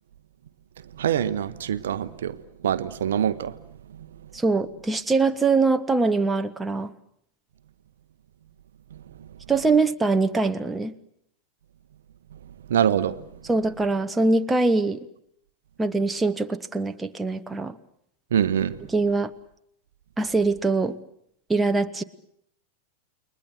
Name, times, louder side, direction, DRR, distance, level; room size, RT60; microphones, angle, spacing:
voice 1, 1.0-2.4 2.6-3.6 12.7-13.2 18.3-18.8, right 9 dB, 60° right, 14 dB, 1.0 m, -24 dB
voice 2, 4.3-6.9 9.5-10.9 13.5-15.1 15.8-17.8 18.9-19.3 20.2-21.0 21.5-22.0, right 3 dB, 10° right, 8 dB, 1.1 m, -23 dB
29.5 x 21.5 x 7.9 m, 0.72 s
figure-of-eight pair, 90°, 0 cm